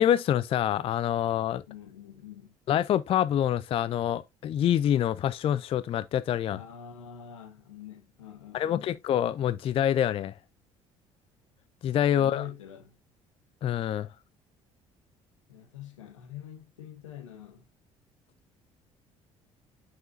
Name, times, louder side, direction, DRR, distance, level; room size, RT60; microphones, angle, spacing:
voice 1, 0.0-1.6 2.7-6.6 8.5-10.4 11.8-12.4 13.6-14.1, left 10 dB, 35° left, 0.4 m, -26 dB
voice 2, 1.7-2.5 6.5-8.9 12.1-13.0 15.5-17.6, left 9 dB, 80° left, 1.1 m, -45 dB
6.7 x 6.1 x 2.5 m
figure-of-eight pair, 55°, 16 cm